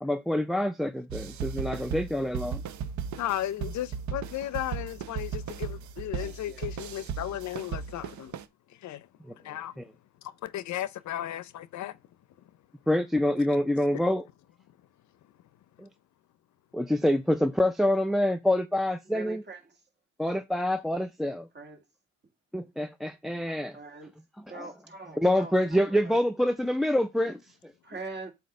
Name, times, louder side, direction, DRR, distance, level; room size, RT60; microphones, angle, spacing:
voice 1, 0.0-2.6 9.2-9.3 9.8-9.9 12.9-14.2 15.8-15.9 16.7-19.4 20.2-21.5 22.5-23.8 24.4-24.7 25.2-27.7, left 1 dB, ahead, 0.4 m, -26 dB
sound 1, 1.1-8.4, right 7 dB, 70° right, 0.7 m, -36 dB
voice 2, 3.2-8.4 8.7-9.1 9.4-9.7 10.2-12.0, left 12 dB, 70° left, 0.6 m, -35 dB
voice 3, 6.2-6.7 19.1-19.6 21.5-21.8 23.7-24.1 24.5-26.2 27.8-28.3, right 3 dB, 35° right, 2.3 m, -43 dB
7.7 x 2.9 x 5.2 m
cardioid pair, 90°, 30 cm